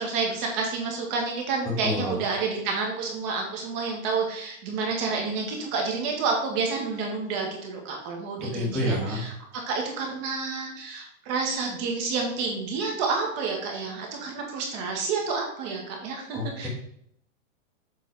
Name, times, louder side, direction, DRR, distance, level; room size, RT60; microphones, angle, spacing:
voice 1, 0.0-16.7, right 4 dB, 35° right, 1 dB, 1.5 m, -29 dB
voice 2, 1.8-2.2 8.4-9.2 16.3-16.7, left 1 dB, ahead, -7 dB, 1.3 m, -28 dB
7.5 x 3.8 x 4.6 m, 0.70 s
hypercardioid pair, 150°, 40 cm